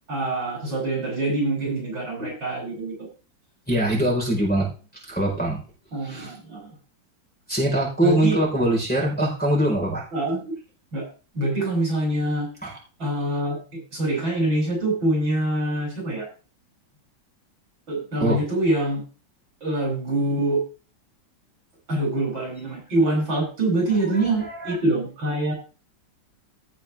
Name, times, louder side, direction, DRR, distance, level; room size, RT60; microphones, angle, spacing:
voice 1, 0.1-3.1 5.9-6.7 8.0-8.4 10.1-10.6 10.9-11.1 11.3-12.5 13.0-16.3 17.9-19.0 19.6-20.6 21.9-25.5, right 2 dB, 85° right, -2 dB, 9.0 m, -25 dB
voice 2, 3.7-4.7 5.1-5.6 6.0-6.3 7.5-10.0 12.6-12.7 18.2-18.4 24.6-24.7, right 1 dB, 5° left, -5 dB, 5.1 m, -22 dB
17.0 x 6.9 x 3.7 m, 0.35 s
omnidirectional pair, 2.1 m